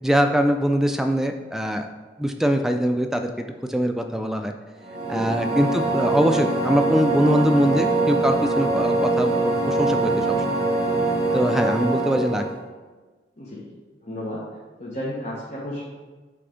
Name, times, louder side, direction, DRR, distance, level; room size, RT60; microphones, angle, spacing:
voice 1, 0.0-1.9 2.2-3.3 3.7-4.5 5.1-10.3 11.3-12.4, equal, 5° right, 5 dB, 0.3 m, -22 dB
sound 1, 4.8-12.6, right 2 dB, 40° right, 2.1 m, -23 dB
voice 2, 5.1-5.9 11.4-11.5 12.0-12.1 13.4-13.6 14.0-14.4 14.8-15.8, left 1 dB, 40° left, -7 dB, 1.1 m, -33 dB
7.7 x 3.4 x 5.1 m, 1.3 s
head